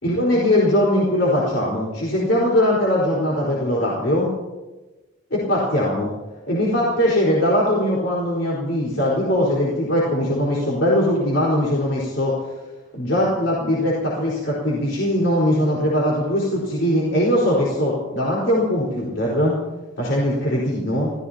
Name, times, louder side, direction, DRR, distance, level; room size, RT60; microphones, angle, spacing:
voice 1, 0.0-4.3 5.3-6.1 6.5-12.5 12.9-19.5 20.0-21.1, left 1 dB, 70° left, -5 dB, 4.7 m, -20 dB
29.0 x 16.0 x 2.9 m, 1.2 s
head